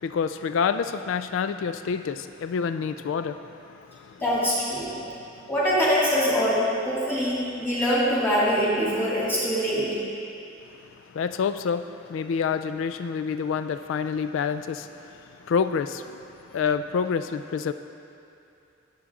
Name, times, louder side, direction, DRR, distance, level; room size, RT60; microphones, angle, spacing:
voice 1, 0.0-4.2 11.1-16.2 16.5-17.7, left 6 dB, 70° left, 10 dB, 0.3 m, -28 dB
voice 2, 4.2-4.9 5.5-9.9, equal, 10° left, -9 dB, 3.1 m, -23 dB
18.5 x 7.2 x 3.7 m, 2.7 s
head